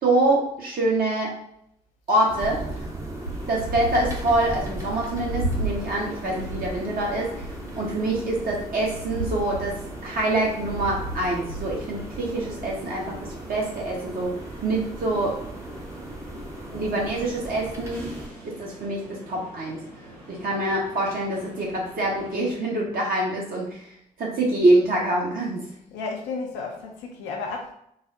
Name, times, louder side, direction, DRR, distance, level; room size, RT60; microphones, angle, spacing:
voice 1, 0.0-1.3 2.1-2.6 3.5-7.3 7.8-9.7 10.0-13.1 13.5-14.3 14.6-15.3 16.7-18.1 18.4-19.8 20.3-23.8 24.2-25.6, right 2 dB, 50° right, -3 dB, 1.2 m, -25 dB
sound 1, 2.3-18.3, right 1 dB, 15° right, 0.8 m, -37 dB
sound 2, 3.2-22.5, right 1 dB, 90° right, 0.7 m, -38 dB
voice 2, 25.9-27.7, left 4 dB, 75° left, 1 dB, 0.6 m, -32 dB
3.8 x 2.0 x 2.7 m, 0.74 s
figure-of-eight pair, 40°, 19 cm